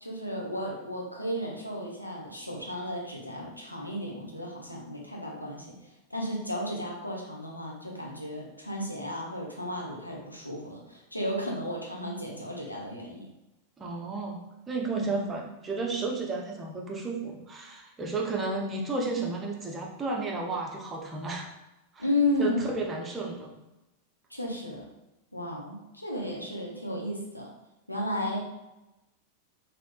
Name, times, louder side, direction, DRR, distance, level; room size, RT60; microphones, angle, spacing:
voice 1, 0.0-5.7 6.1-13.3 15.0-15.3 22.0-22.7 24.3-24.9 25.3-27.5 27.9-28.4, left 1 dB, 90° left, -2 dB, 0.6 m, -33 dB
voice 2, 13.8-14.4 14.7-21.5 21.9-22.1 22.4-23.5, right 3 dB, 20° right, -1 dB, 0.7 m, -32 dB
3.3 x 2.7 x 2.4 m, 0.96 s
figure-of-eight pair, 90°, 0 cm